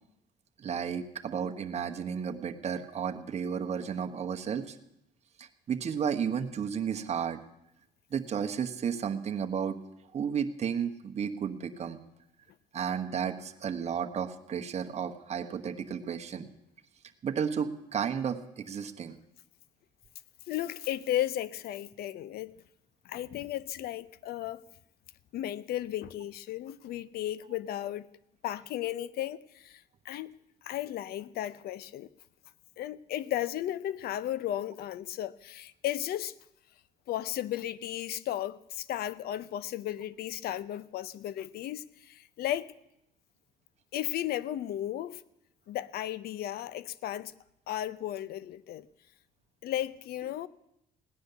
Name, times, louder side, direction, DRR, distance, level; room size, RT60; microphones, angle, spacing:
voice 1, 0.6-4.8 5.4-7.4 8.1-9.8 10.1-12.0 12.7-16.5 17.2-19.2, right 7 dB, 40° right, 1.2 m, -33 dB
voice 2, 20.5-22.5 23.0-24.6 25.3-28.1 28.4-30.3 30.6-32.1 32.8-36.3 37.1-42.7 43.9-45.2 45.7-47.3 47.7-48.9 49.6-50.5, left 12 dB, 65° left, 0.6 m, -35 dB
17.0 x 10.0 x 6.8 m
cardioid pair, 110°, 17 cm